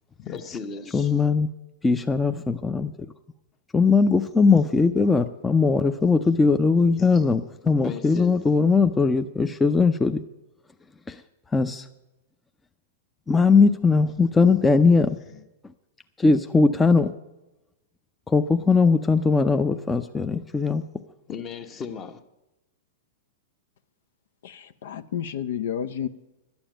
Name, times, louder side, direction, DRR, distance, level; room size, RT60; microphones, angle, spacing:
voice 1, 0.2-1.2 6.0-6.3 6.8-7.2 7.6-8.6 14.4-14.6 15.1-15.4 21.3-22.2, left 6 dB, 30° left, 1.0 m, -37 dB
voice 2, 0.9-1.5 1.8-3.1 3.7-10.2 11.1-11.2 11.5-11.8 13.3-15.2 16.2-17.1 18.3-20.8, left 4 dB, 10° left, 0.5 m, -20 dB
voice 3, 24.4-26.1, left 9 dB, 70° left, 0.5 m, -31 dB
11.5 x 7.1 x 8.9 m
hypercardioid pair, 120°, 0 cm